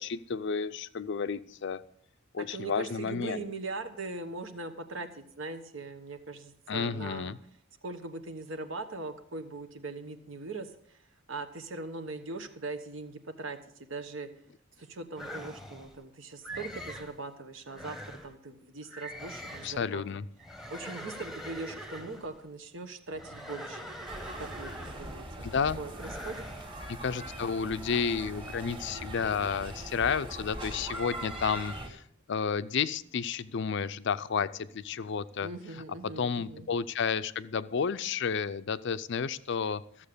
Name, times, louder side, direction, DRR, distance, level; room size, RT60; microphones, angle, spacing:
voice 1, 0.0-1.8 2.3-3.4 6.7-7.4 19.6-20.3 25.4-25.8 26.9-32.0 32.3-35.5 36.2-40.1, left 6 dB, 60° left, 14 dB, 0.5 m, -31 dB
voice 2, 2.5-7.3 7.8-11.0 11.3-13.6 13.9-14.3 14.8-18.0 18.2-20.2 20.7-23.8 24.4-25.5 25.8-26.5 35.4-36.7, right 3 dB, 65° right, 8 dB, 1.2 m, -40 dB
sound 1, 15.2-16.0 16.4-17.2 17.7-18.3 18.9-19.9 20.4-22.3 23.1-25.3 25.9-26.7, equal, ahead, 1.0 m, -43 dB
sound 2, 24.1-31.9, right 1 dB, 25° right, 1.8 m, -41 dB
13.5 x 7.4 x 6.7 m, 0.66 s
head